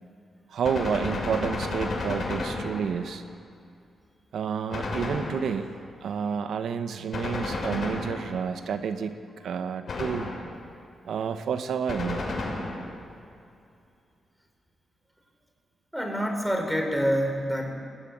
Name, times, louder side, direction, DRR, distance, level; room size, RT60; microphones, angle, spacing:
voice 1, 0.5-3.2 4.3-5.7 6.0-9.2 9.4-10.3 11.0-12.2, right 7 dB, 80° right, 8 dB, 1.1 m, -30 dB
Gunshot gunfire, 0.6-3.1 4.7-5.8 7.1-8.6 9.9-10.7 11.9-13.0, left 2 dB, 55° left, 6.4 m, -32 dB
voice 2, 15.9-17.7, equal, ahead, 3 dB, 4.7 m, -26 dB
21.0 x 18.0 x 9.4 m, 2.5 s
cardioid pair, 85°, 0 cm